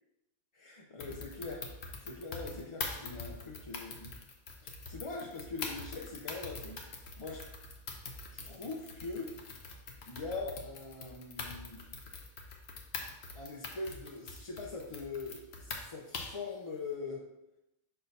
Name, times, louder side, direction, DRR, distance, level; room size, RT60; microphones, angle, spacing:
voice 1, 0.5-4.1 4.6-7.4 8.3-9.7 10.0-11.9 13.3-17.2, left 3 dB, 35° left, -3 dB, 0.6 m, -42 dB
sound 1, 1.0-16.5, left 4 dB, 75° left, 1.1 m, -44 dB
6.6 x 5.4 x 2.7 m, 0.89 s
omnidirectional pair, 1.1 m